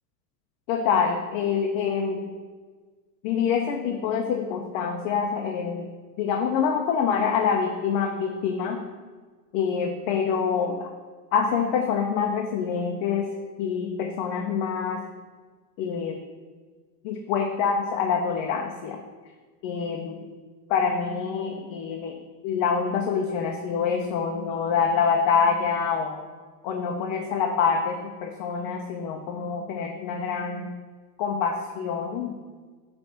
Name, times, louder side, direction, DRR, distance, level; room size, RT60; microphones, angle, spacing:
voice 1, 0.7-2.2 3.2-5.9 6.2-8.8 9.5-10.9 11.3-13.3 13.6-15.0 15.8-16.2 17.0-19.0 19.6-20.2 20.7-22.2 22.4-26.2 26.6-30.7 31.2-32.3, left 6 dB, 45° left, 2 dB, 1.0 m, -26 dB
9.7 x 3.6 x 6.8 m, 1.5 s
hypercardioid pair, 120°, 50 cm